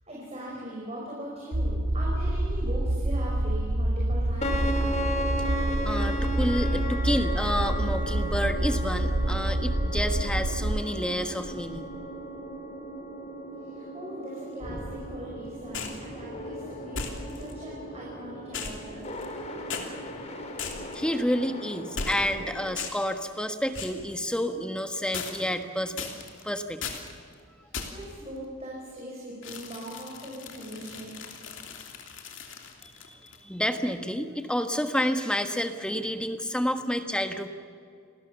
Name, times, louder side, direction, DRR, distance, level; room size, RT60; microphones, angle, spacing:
voice 1, 0.1-4.7 13.6-19.1 27.6-31.1, equal, 30° right, -4 dB, 5.6 m, -40 dB
sound 1, 1.5-10.8, right 1 dB, 60° right, 0.9 m, -27 dB
sound 2, 4.4-22.8, equal, 30° left, 3.3 m, -36 dB
voice 2, 5.8-11.9 20.6-26.1 26.4-27.0 32.8-37.5, equal, 5° left, 7 dB, 1.3 m, -29 dB
sound 3, 15.7-16.1 16.9-17.5 18.5-19.4 19.7-19.9 20.6-21.0 22.0-22.4 22.8-23.1 23.7-24.0 25.1-25.6 26.0-26.4 26.8-27.1 27.7-28.1 29.4-33.4, left 5 dB, 60° left, 3.0 m, -37 dB
29.0 x 20.5 x 7.1 m, 2.3 s
head